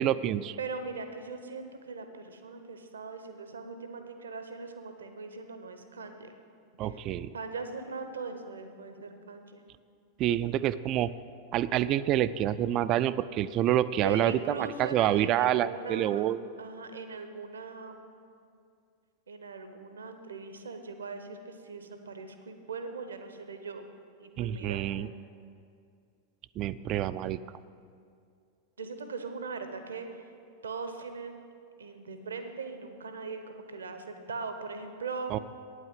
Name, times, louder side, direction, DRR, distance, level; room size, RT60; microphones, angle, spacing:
voice 1, 0.0-0.6 6.8-7.3 10.2-11.1 11.5-16.5 24.4-25.1 26.6-27.4 35.3-35.4, right 12 dB, 35° right, 15 dB, 0.3 m, -27 dB
voice 2, 0.6-6.3 6.8-7.0 7.3-9.6 14.0-16.2 16.6-18.1 19.3-23.8 24.2-24.9 28.8-30.3 30.6-31.4 31.8-35.4, right 4 dB, 70° right, 7 dB, 0.8 m, -40 dB
9.2 x 8.0 x 7.6 m, 2.3 s
figure-of-eight pair, 90°, 0 cm